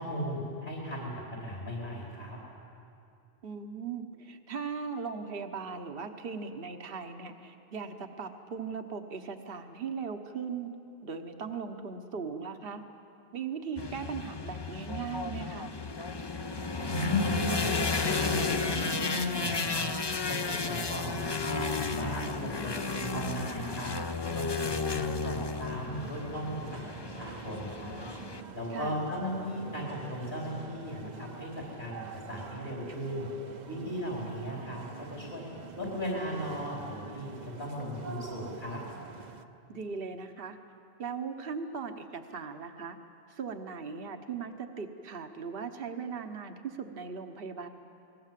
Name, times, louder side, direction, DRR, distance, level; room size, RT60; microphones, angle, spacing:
voice 1, 0.0-2.4 16.8-17.7 18.1-19.9 20.3-23.9 24.3-26.7 27.0-28.0 28.5-31.5 31.8-32.0 32.3-33.3 33.7-35.4 35.7-38.8, equal, 65° left, -4 dB, 4.3 m, -36 dB
voice 2, 3.4-10.7 11.0-12.8 13.3-15.7 28.7-29.0 39.7-40.6 41.0-43.0 43.3-47.7, right 5 dB, 60° right, 6 dB, 1.3 m, -38 dB
sound 1, 13.8-28.4, left 4 dB, 30° left, 0.7 m, -33 dB
sound 2, 25.9-39.4, right 6 dB, 45° right, 0.9 m, -46 dB
28.5 x 20.0 x 7.5 m, 2.7 s
omnidirectional pair, 1.1 m